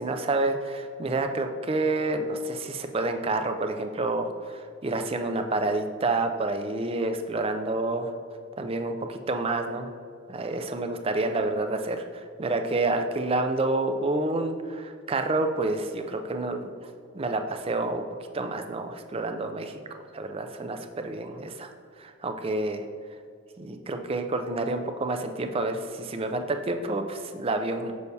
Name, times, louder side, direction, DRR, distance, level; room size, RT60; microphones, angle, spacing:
voice 1, 0.0-8.1 8.6-9.9 10.3-16.7 17.1-18.0 18.3-19.7 20.1-21.7 22.0-22.9 23.6-27.9, right 2 dB, 25° right, 6 dB, 0.4 m, -28 dB
6.6 x 6.4 x 2.8 m, 2.3 s
head